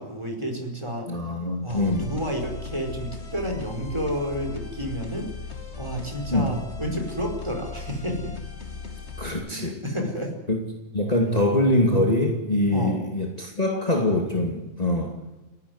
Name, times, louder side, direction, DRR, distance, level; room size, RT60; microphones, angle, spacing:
voice 1, 0.0-1.2 1.6-5.3 5.8-8.3 9.5-10.3 12.7-13.0, equal, 20° right, 2 dB, 5.1 m, -30 dB
voice 2, 1.1-2.2 6.3-6.5 9.2-9.8 10.5-10.6 10.9-15.2, left 1 dB, 30° left, 1 dB, 2.5 m, -23 dB
sound 1, 1.7-9.3, left 5 dB, 55° left, 2.7 m, -37 dB
29.0 x 12.5 x 9.6 m, 1.1 s
omnidirectional pair, 1.4 m